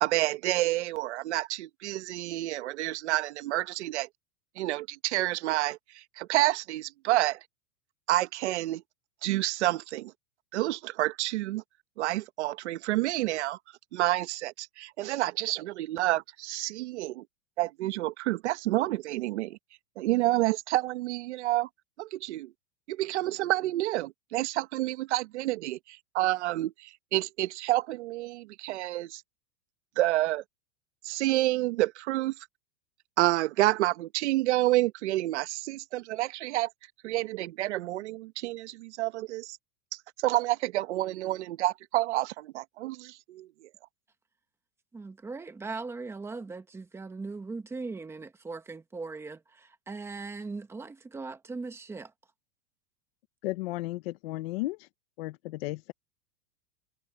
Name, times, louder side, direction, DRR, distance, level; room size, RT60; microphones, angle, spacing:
voice 1, 0.0-4.1 4.6-5.8 6.2-7.4 8.1-8.8 9.2-10.1 10.5-11.6 12.0-13.6 13.9-17.2 17.6-19.6 20.0-21.7 22.0-22.5 22.9-29.2 30.0-30.4 31.0-32.3 33.2-36.7 37.0-39.6 40.2-43.7, right 17 dB, 70° right, 1.4 m, -29 dB
voice 2, 44.9-52.1, right 3 dB, 5° right, 1.4 m, -39 dB
voice 3, 53.4-54.9 55.2-55.9, left 19 dB, 55° left, 1.0 m, -34 dB
supercardioid pair, 165°, 35 cm